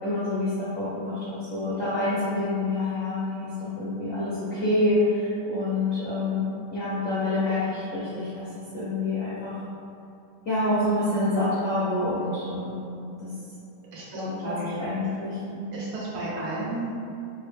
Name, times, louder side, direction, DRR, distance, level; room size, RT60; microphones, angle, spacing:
voice 1, 0.0-1.2 1.5-6.4 6.7-8.5 8.7-9.6 10.5-12.9 13.2-13.3 14.1-15.6, left 2 dB, 90° left, -10 dB, 0.7 m, -27 dB
voice 2, 13.9-14.9 15.7-16.9, right 2 dB, 70° right, -6 dB, 1.5 m, -33 dB
3.9 x 2.1 x 3.3 m, 2.6 s
omnidirectional pair, 2.4 m